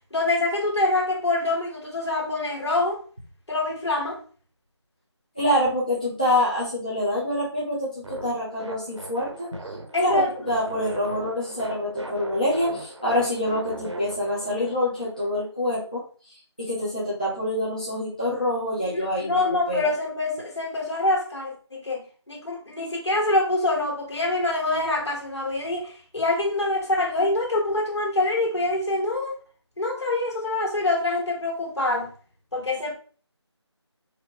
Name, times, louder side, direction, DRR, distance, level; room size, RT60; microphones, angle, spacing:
voice 1, 0.1-3.0 3.5-4.2 9.9-10.3 18.8-29.3 29.8-32.1 32.5-32.9, left 2 dB, 70° left, -2 dB, 1.8 m, -25 dB
voice 2, 5.4-9.5 10.0-16.0 16.6-19.4 19.7-19.9, left 1 dB, 15° left, -9 dB, 0.6 m, -26 dB
sound 1, 8.0-15.5, right 1 dB, 80° right, 0.8 m, -39 dB
4.1 x 2.6 x 3.0 m, 0.41 s
figure-of-eight pair, 175°, 15 cm